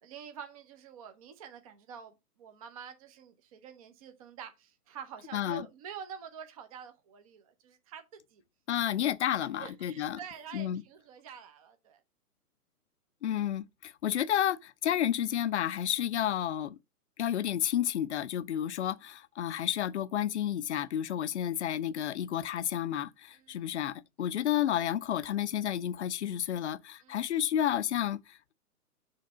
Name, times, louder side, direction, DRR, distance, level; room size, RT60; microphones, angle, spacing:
voice 1, 0.0-8.4 9.6-12.0 21.3-21.4 23.3-23.6 24.2-24.4 27.0-27.3, right 8 dB, 25° right, 0.7 m, -47 dB
voice 2, 5.3-5.7 8.7-10.2 10.5-10.8 13.2-16.8 17.2-28.5, left 10 dB, 50° left, 0.5 m, -31 dB
6.7 x 3.2 x 5.5 m
hypercardioid pair, 140°, 46 cm